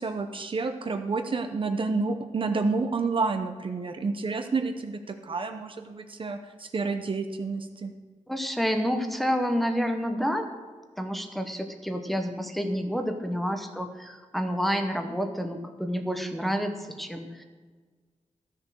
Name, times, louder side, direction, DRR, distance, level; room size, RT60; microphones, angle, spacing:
voice 1, 0.0-7.9, right 4 dB, 45° right, 7 dB, 0.7 m, -29 dB
voice 2, 8.3-10.5 11.0-17.4, equal, ahead, 5 dB, 0.9 m, -29 dB
13.0 x 6.7 x 6.2 m, 1.5 s
wide cardioid pair, 165°, 13 cm